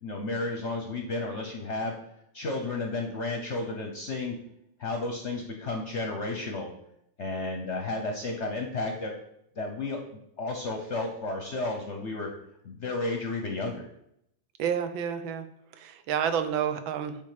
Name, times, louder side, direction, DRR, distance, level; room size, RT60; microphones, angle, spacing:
voice 1, 0.0-1.9 2.3-4.3 4.8-6.7 7.2-9.1 9.6-10.1 10.4-12.3 12.6-13.9, left 2 dB, 55° left, 2 dB, 0.8 m, -32 dB
voice 2, 14.6-15.5 15.8-17.2, right 8 dB, 90° right, 9 dB, 1.5 m, -29 dB
8.3 x 3.5 x 4.9 m, 0.76 s
omnidirectional pair, 2.1 m